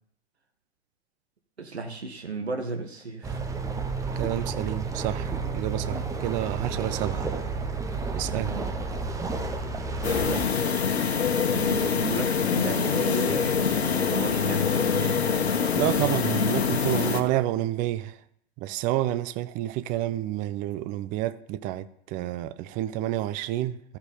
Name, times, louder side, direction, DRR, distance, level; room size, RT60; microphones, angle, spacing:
voice 1, 1.6-3.4 8.3-8.7 10.0-10.5 11.5-15.2, right 4 dB, 90° right, 1.3 m, -34 dB
sound 1, 3.2-10.5, right 4 dB, 10° right, 0.9 m, -31 dB
voice 2, 4.2-7.3 8.1-8.5 15.8-18.2 18.6-24.0, right 14 dB, 25° right, 0.5 m, -29 dB
sound 2, 10.0-17.2, left 6 dB, 80° left, 1.3 m, -25 dB
13.5 x 5.3 x 5.0 m
hypercardioid pair, 110°, 32 cm